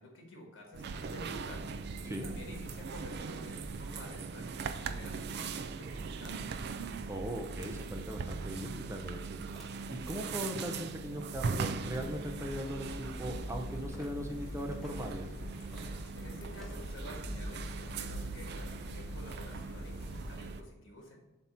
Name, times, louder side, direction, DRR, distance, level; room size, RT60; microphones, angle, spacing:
voice 1, 0.0-6.6 16.1-21.2, left 1 dB, 70° left, -1 dB, 1.8 m, -51 dB
sound 1, 0.7-20.6, right 4 dB, 60° right, 0.4 m, -40 dB
voice 2, 7.1-9.2 9.9-15.3, equal, 15° right, 2 dB, 0.6 m, -39 dB
sound 2, 9.5-9.7 10.5-10.8 11.5-11.7 12.4-12.7 13.9-14.1 14.7-14.9 15.6-15.9 16.5-16.9, equal, ahead, 1.5 m, -54 dB
sound 3, 11.3-20.3, equal, 50° left, 1.0 m, -44 dB
7.5 x 2.9 x 5.6 m, 1.1 s
head